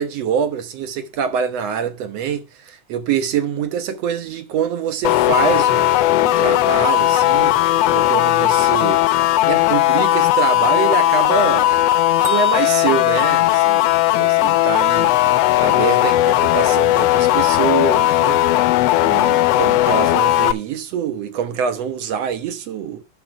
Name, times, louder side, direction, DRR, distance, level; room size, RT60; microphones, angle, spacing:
voice 1, 0.0-9.0 9.5-11.7 12.2-15.1 15.6-18.4 19.0-23.0, right 7 dB, 65° right, 2.0 m, -25 dB
sound 1, 5.0-20.5, left 14 dB, 80° left, 1.4 m, -16 dB
Bell, 12.2-14.3, right 2 dB, 85° right, 2.6 m, -37 dB
10.5 x 5.8 x 4.7 m
omnidirectional pair, 3.5 m